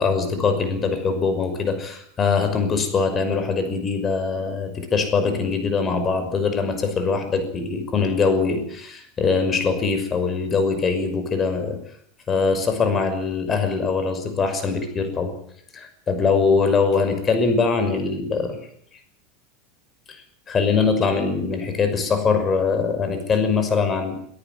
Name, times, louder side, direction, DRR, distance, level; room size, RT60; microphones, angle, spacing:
voice 1, 0.0-11.8 12.3-15.3 15.7-18.6 20.1-24.1, left 4 dB, 25° left, 8 dB, 6.1 m, -22 dB
24.0 x 13.5 x 9.7 m, 0.64 s
supercardioid pair, 130°, 0 cm